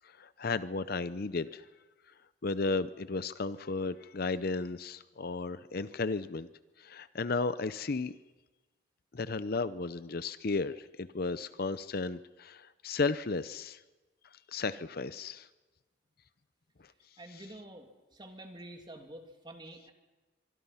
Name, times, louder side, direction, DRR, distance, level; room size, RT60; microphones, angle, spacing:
voice 1, 0.0-1.7 2.4-6.5 6.8-8.2 9.1-13.8 14.3-15.5 16.8-16.9, left 3 dB, 50° left, 14 dB, 0.6 m, -34 dB
voice 2, 17.2-19.9, right 1 dB, 20° right, 4 dB, 2.8 m, -48 dB
25.0 x 24.0 x 5.7 m, 1.2 s
head